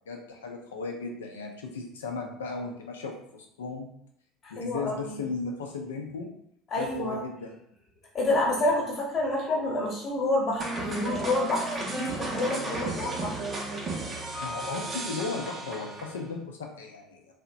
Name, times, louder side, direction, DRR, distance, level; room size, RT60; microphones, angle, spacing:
voice 1, 0.1-3.9 4.5-6.3 6.8-7.5 12.7-13.0 14.4-17.3, left 4 dB, 80° left, 2 dB, 0.4 m, -36 dB
voice 2, 4.4-5.1 6.7-7.2 8.1-13.5, left 2 dB, 35° left, -3 dB, 1.0 m, -28 dB
sound 1, 10.6-16.3, right 2 dB, 30° right, 0.6 m, -34 dB
2.7 x 2.1 x 2.5 m, 0.75 s
figure-of-eight pair, 65°, 0 cm